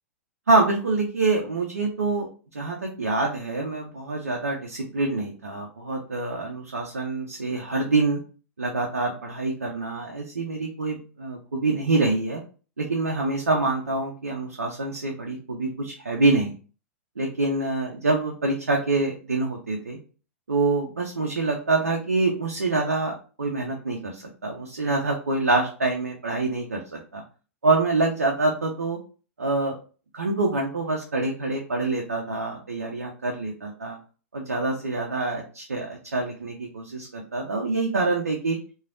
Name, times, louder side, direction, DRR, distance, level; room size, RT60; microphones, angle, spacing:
voice 1, 0.5-2.3 2.5-8.2 8.6-12.4 12.8-16.6 17.2-20.0 20.5-27.2 27.6-29.0 29.4-29.8 30.1-34.0 34.3-38.6, right 3 dB, 75° right, 1 dB, 0.5 m, -26 dB
3.1 x 2.3 x 2.4 m, 0.38 s
figure-of-eight pair, 100°, 8 cm